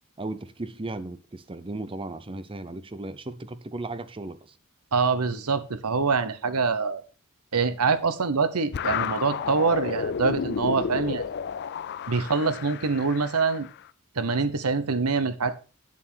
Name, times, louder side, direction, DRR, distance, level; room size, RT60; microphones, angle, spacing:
voice 1, 0.2-4.5, right 2 dB, 25° right, 0.6 m, -36 dB
voice 2, 4.9-7.0 7.5-11.2 12.1-13.7 14.2-15.6, right 4 dB, 85° right, 0.9 m, -25 dB
sound 1, 8.7-13.8, left 7 dB, 50° left, 0.4 m, -32 dB
8.5 x 7.4 x 4.5 m
head